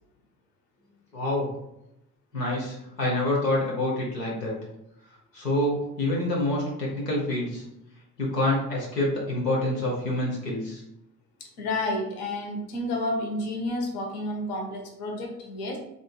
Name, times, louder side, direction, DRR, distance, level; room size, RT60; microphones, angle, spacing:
voice 1, 1.1-1.5 2.3-4.5 5.3-7.6 8.2-10.8, left 1 dB, 85° left, -4 dB, 0.9 m, -27 dB
voice 2, 11.4-15.8, left 1 dB, 55° left, 2 dB, 0.9 m, -30 dB
3.7 x 3.6 x 2.3 m, 0.84 s
figure-of-eight pair, 45°, 48 cm